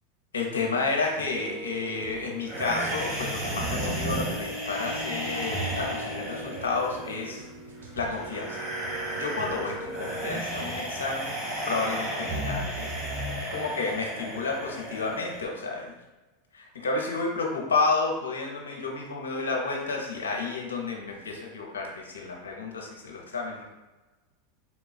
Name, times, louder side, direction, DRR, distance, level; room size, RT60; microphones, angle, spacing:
voice 1, 0.3-7.5 8.0-8.7 9.2-11.3 11.7-12.9 13.5-15.9 16.5-23.7, left 3 dB, 85° left, 0 dB, 0.5 m, -31 dB
sound 1, 1.2-10.2, right 1 dB, 80° right, 0.5 m, -40 dB
sound 2, 2.5-15.4, right 1 dB, 40° right, 1.1 m, -33 dB
4.0 x 2.3 x 2.4 m, 1.1 s
hypercardioid pair, 95°, 0 cm